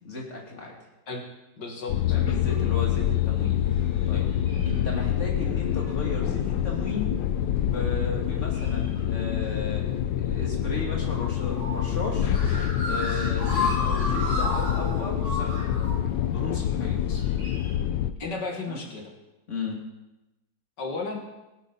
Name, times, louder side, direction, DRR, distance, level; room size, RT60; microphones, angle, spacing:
voice 1, 0.0-0.8 2.1-3.6 4.1-4.2 4.6-7.2 7.5-12.3 12.8-15.7 16.2-17.0 18.7-18.8 19.5-19.8, left 3 dB, 40° left, -2 dB, 3.0 m, -35 dB
voice 2, 1.6-2.2 17.1-17.2 18.2-19.1 20.8-21.2, left 3 dB, 70° left, 1 dB, 2.5 m, -34 dB
sound 1, 1.9-18.1, left 10 dB, 85° left, 1.4 m, -26 dB
sound 2, 2.8-2.9 3.7-4.0 4.3-5.0 5.8-6.0 8.4-9.0 10.7-17.7, left 2 dB, 20° left, 6.4 m, -33 dB
18.5 x 11.5 x 4.1 m, 0.98 s
omnidirectional pair, 1.9 m